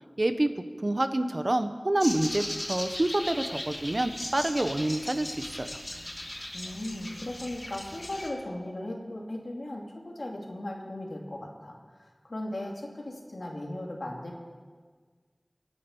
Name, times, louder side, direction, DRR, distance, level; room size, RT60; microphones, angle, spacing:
voice 1, 0.2-5.8, right 1 dB, 55° right, 9 dB, 1.0 m, -28 dB
sound 1, 2.0-8.3, left 1 dB, 40° left, 3.0 m, -38 dB
voice 2, 6.5-14.4, left 1 dB, 90° left, -1 dB, 2.7 m, -37 dB
24.5 x 10.0 x 5.5 m, 1.5 s
wide cardioid pair, 40°, 0 cm